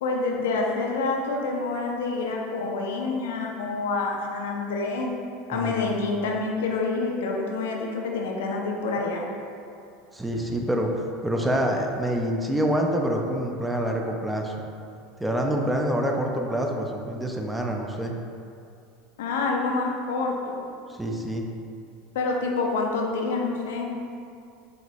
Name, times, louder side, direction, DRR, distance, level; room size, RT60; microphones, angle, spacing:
voice 1, 0.0-5.1 5.5-9.2 19.2-20.7 22.1-23.9, left 3 dB, 65° left, 0 dB, 0.5 m, -27 dB
voice 2, 10.1-14.5 15.2-18.1 20.9-21.5, equal, 5° right, 1 dB, 0.4 m, -26 dB
4.9 x 2.9 x 2.6 m, 2.5 s
figure-of-eight pair, 75°, 0 cm